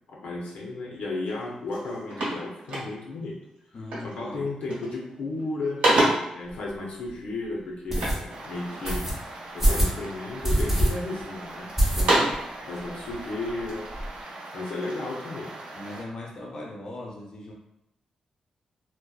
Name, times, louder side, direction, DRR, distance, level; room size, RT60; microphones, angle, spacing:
voice 1, 0.1-3.4 4.0-5.8 6.3-9.2 9.5-12.2 12.7-13.9 14.5-15.5, left 2 dB, 85° left, -2 dB, 0.5 m, -34 dB
sound 1, 1.3-1.4 1.7-3.3 3.9-4.2 4.5-5.0 5.4-6.4 7.9-9.1 9.6-10.3 10.8-11.5 11.8-12.5, right 1 dB, 85° right, 1.0 m, -27 dB
voice 2, 3.7-4.5 15.7-17.5, left 2 dB, 35° left, -3 dB, 0.6 m, -39 dB
sound 2, 6.5-6.6 7.1-7.2 7.9-8.2 8.9-9.1 9.6-10.0 10.4-10.9 11.2-11.3 11.8-12.4 12.8-12.9 13.1-13.2 13.5-14.1, right 1 dB, 10° right, 0.6 m, -23 dB
sound 3, 8.3-16.0, right 2 dB, 55° right, 0.5 m, -41 dB
2.6 x 2.1 x 2.2 m, 0.84 s
wide cardioid pair, 135°, 2 cm